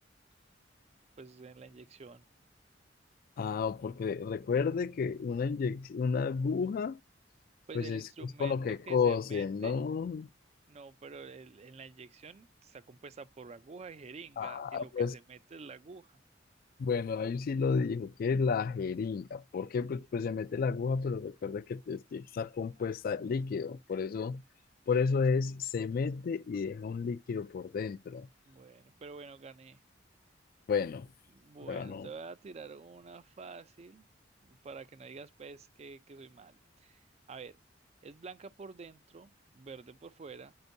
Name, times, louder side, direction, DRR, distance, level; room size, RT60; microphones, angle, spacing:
voice 1, 1.2-2.2 7.7-8.6 8.9-9.8 10.7-16.2 28.5-29.8 31.3-34.0 34.4-37.6 38.0-40.5, right 4 dB, 35° right, 0.4 m, -48 dB
voice 2, 3.4-7.0 7.7-8.0 8.4-10.3 14.4-15.1 16.8-24.4 24.9-28.3 30.7-31.1 31.7-32.1, left 5 dB, 50° left, 0.3 m, -32 dB
9.5 x 4.4 x 2.6 m
head